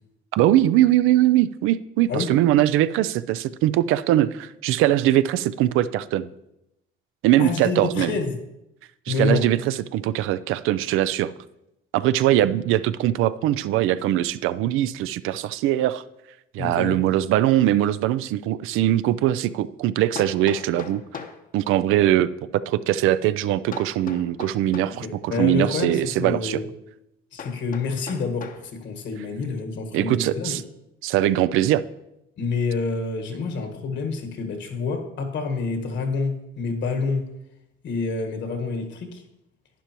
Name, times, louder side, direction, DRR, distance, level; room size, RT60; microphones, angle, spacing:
voice 1, 0.3-6.3 7.2-8.1 9.1-11.3 11.9-16.0 16.5-21.0 21.5-26.6 29.9-30.6 31.0-31.8, right 13 dB, 75° right, 15 dB, 0.4 m, -21 dB
voice 2, 7.4-8.4 9.1-9.4 16.6-17.0 24.8-26.7 27.3-30.6 32.4-37.3 37.8-39.2, left 4 dB, 60° left, 5 dB, 1.6 m, -27 dB
Hammer, 20.2-21.4 23.7-25.0 27.4-28.7, left 6 dB, 40° left, 0.9 m, -38 dB
11.5 x 9.3 x 3.0 m, 0.87 s
cardioid pair, 105°, 21 cm